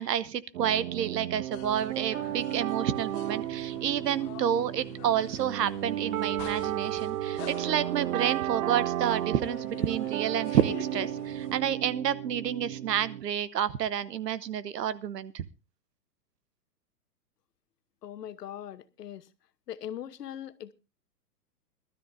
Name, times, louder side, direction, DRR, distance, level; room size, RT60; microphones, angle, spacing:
voice 1, 0.0-15.4, right 9 dB, 75° right, 1.0 m, -29 dB
sound 1, 0.5-13.2, right 12 dB, 55° right, 0.7 m, -33 dB
sound 2, 1.5-11.6, left 13 dB, 30° left, 1.1 m, -47 dB
voice 2, 18.0-19.3 19.7-20.7, left 10 dB, 70° left, 1.2 m, -40 dB
22.5 x 12.5 x 2.6 m
hypercardioid pair, 130°, 49 cm